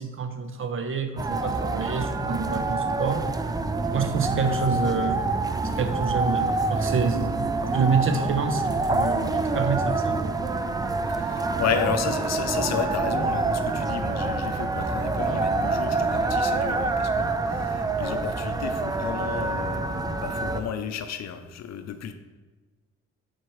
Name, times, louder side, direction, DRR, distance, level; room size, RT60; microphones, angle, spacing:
voice 1, 0.0-3.3 3.9-5.2 5.8-10.3, right 5 dB, 45° right, 7 dB, 0.7 m, -27 dB
sound 1, 1.2-20.6, right 3 dB, 15° right, 0.3 m, -26 dB
voice 2, 11.0-22.1, left 7 dB, 60° left, 9 dB, 0.6 m, -32 dB
7.4 x 4.5 x 3.1 m, 1.3 s
cardioid pair, 90°, 30 cm